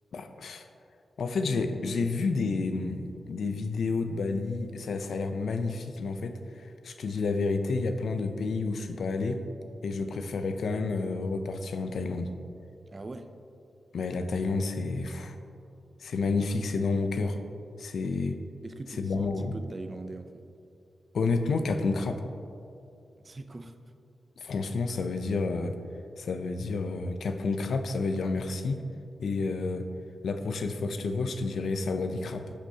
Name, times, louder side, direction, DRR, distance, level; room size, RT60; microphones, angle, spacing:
voice 1, 0.1-0.6 1.2-9.4 9.8-12.3 13.9-15.4 16.0-17.4 17.8-18.4 19.0-19.5 21.1-22.2 24.4-25.8 26.2-28.8 29.2-29.9 30.2-32.5, left 3 dB, 85° left, 7 dB, 0.5 m, -30 dB
voice 2, 12.9-13.3 18.6-20.5 23.2-23.8, right 2 dB, 35° right, 8 dB, 0.4 m, -41 dB
11.5 x 6.2 x 2.8 m, 2.6 s
wide cardioid pair, 110°, 0 cm